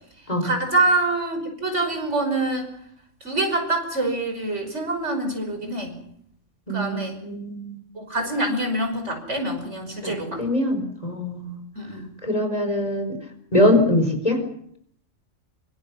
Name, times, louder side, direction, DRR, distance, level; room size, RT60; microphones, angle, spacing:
voice 1, 0.4-2.7 3.2-6.0 6.7-7.2 7.9-10.4 11.8-12.0, right 2 dB, 70° right, 5 dB, 6.0 m, -25 dB
voice 2, 6.7-7.8 10.0-10.1 10.4-11.6 12.2-13.2 13.5-14.4, left 1 dB, 30° left, 5 dB, 4.8 m, -22 dB
26.0 x 24.5 x 6.1 m, 0.67 s
omnidirectional pair, 1.3 m